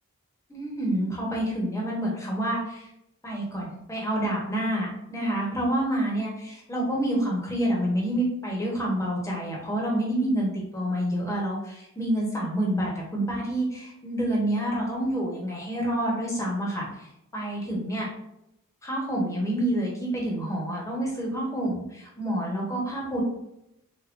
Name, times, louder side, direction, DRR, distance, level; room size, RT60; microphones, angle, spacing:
voice 1, 0.5-2.9 3.2-18.1 18.8-23.2, right 1 dB, 15° left, -3 dB, 1.1 m, -28 dB
3.9 x 3.6 x 2.6 m, 0.81 s
head